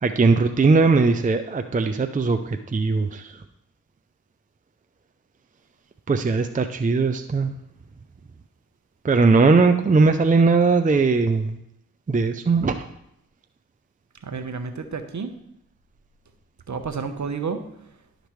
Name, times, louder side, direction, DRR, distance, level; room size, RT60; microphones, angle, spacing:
voice 1, 0.0-3.4 6.1-7.5 9.0-11.6 12.1-12.8, right 4 dB, 20° right, 7 dB, 0.5 m, -19 dB
voice 2, 14.2-15.3 16.7-17.6, right 5 dB, 50° right, 7 dB, 1.0 m, -30 dB
11.5 x 5.2 x 3.2 m, 0.77 s
supercardioid pair, 40°, 37 cm